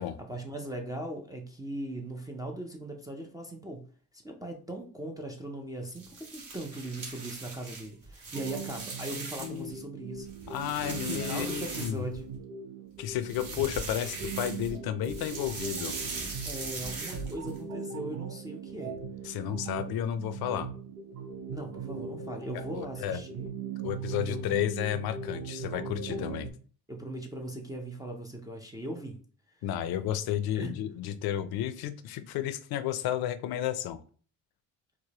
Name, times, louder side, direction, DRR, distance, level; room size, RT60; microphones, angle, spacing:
voice 1, 0.3-3.8 4.2-10.3 10.8-12.2 16.5-19.0 21.5-23.5 24.3-24.4 26.1-26.2 26.9-29.2 30.6-30.8, right 1 dB, 10° right, 0 dB, 0.4 m, -39 dB
sound 1, 5.9-9.7 10.1-12.4 13.1-14.8 15.0-17.6, right 3 dB, 55° right, 1.6 m, -39 dB
sound 2, 8.3-26.5, right 5 dB, 90° right, 0.8 m, -40 dB
voice 2, 9.4-9.7 10.5-12.0 13.0-15.9 19.2-20.7 22.7-23.2 23.8-26.5 29.6-34.0, left 11 dB, 65° left, 11 dB, 0.5 m, -32 dB
4.7 x 2.1 x 2.8 m, 0.42 s
cardioid pair, 110°, 40 cm